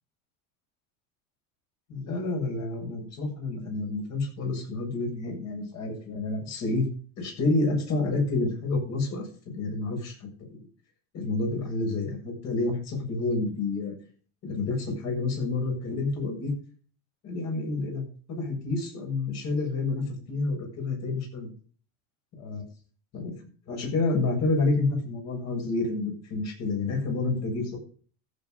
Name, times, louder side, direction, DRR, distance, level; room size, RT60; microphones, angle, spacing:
voice 1, 1.9-6.9 7.2-10.6 11.1-13.9 14.4-16.5 17.2-21.5 22.4-22.6 23.1-23.3 23.7-27.8, left 3 dB, 40° left, 1 dB, 7.7 m, -29 dB
15.0 x 8.5 x 5.4 m, 0.42 s
supercardioid pair, 135°, 39 cm